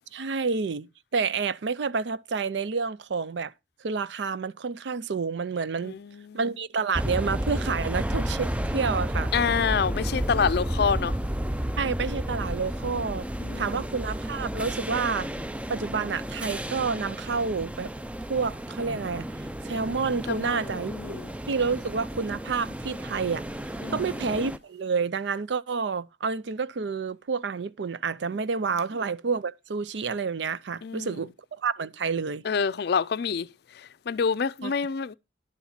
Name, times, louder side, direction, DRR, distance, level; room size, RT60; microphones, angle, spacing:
voice 1, 0.1-3.5 3.8-5.9 6.3-9.3 11.8-13.3 13.6-15.3 15.7-17.9 18.3-20.9 21.5-23.4 23.9-32.4 34.6-34.7, right 5 dB, 75° right, 0.5 m, -29 dB
voice 2, 5.8-6.4 9.3-11.1 13.4-13.8 20.3-21.3 23.8-24.2 30.8-31.3 32.4-33.5 33.7-35.1, left 6 dB, 60° left, 0.4 m, -27 dB
sound 1, 6.9-24.6, equal, 5° right, 0.4 m, -32 dB
11.0 x 4.3 x 5.7 m
head